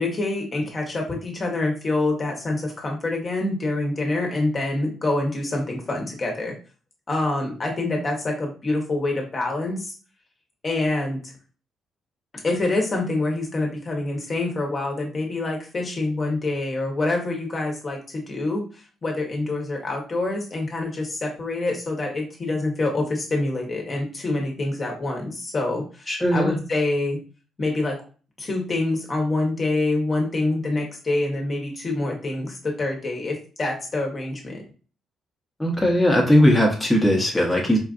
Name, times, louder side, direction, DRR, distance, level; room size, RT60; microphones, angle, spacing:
voice 1, 0.0-6.5 7.1-9.9 10.6-11.3 12.3-27.2 27.6-28.0 28.4-34.6, left 2 dB, 35° left, 1 dB, 1.1 m, -26 dB
voice 2, 26.1-26.6 35.6-37.8, left 1 dB, 5° left, -3 dB, 0.9 m, -18 dB
4.5 x 2.4 x 2.4 m, 0.37 s
cardioid pair, 90°, 0 cm